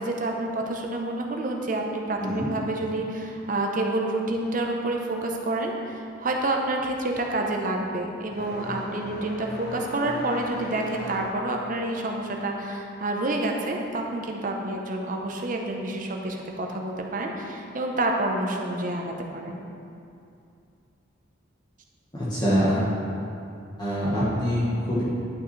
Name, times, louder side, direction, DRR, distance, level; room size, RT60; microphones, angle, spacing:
voice 1, 0.0-19.6, right 2 dB, 45° right, 1 dB, 0.8 m, -28 dB
sound 1, 5.7-6.0 6.3-14.7 14.9-16.0 17.0-17.1 17.9-18.0 19.7-19.9, left 1 dB, 50° left, 0.9 m, -41 dB
voice 2, 22.1-22.9 23.8-25.0, equal, 20° left, -9 dB, 1.3 m, -24 dB
11.0 x 5.9 x 3.3 m, 2.5 s
head